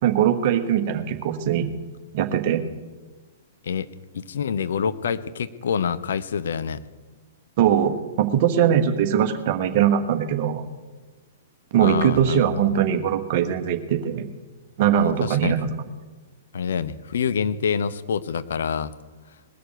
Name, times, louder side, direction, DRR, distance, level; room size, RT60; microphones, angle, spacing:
voice 1, 0.0-1.7 2.1-2.6 7.6-10.7 11.7-14.2 14.8-15.7, right 9 dB, 45° right, 8 dB, 1.4 m, -21 dB
voice 2, 4.1-6.8 11.8-12.8 15.0-15.6 16.5-18.9, left 6 dB, 65° left, 14 dB, 0.8 m, -26 dB
20.0 x 6.8 x 9.0 m, 1.3 s
figure-of-eight pair, 110°, 0 cm